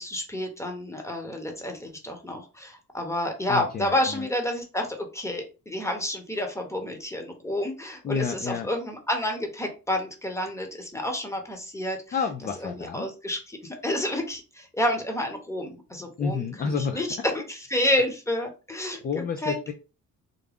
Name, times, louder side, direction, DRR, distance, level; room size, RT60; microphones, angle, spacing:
voice 1, 0.0-12.2 12.6-17.1 17.3-19.6, left 1 dB, 10° left, 4 dB, 1.0 m, -30 dB
voice 2, 3.5-4.3 8.0-8.7 12.1-13.1 16.2-17.0 19.0-19.7, left 5 dB, 30° left, 6 dB, 0.4 m, -30 dB
3.7 x 2.2 x 3.4 m, 0.32 s
cardioid pair, 90°, 30 cm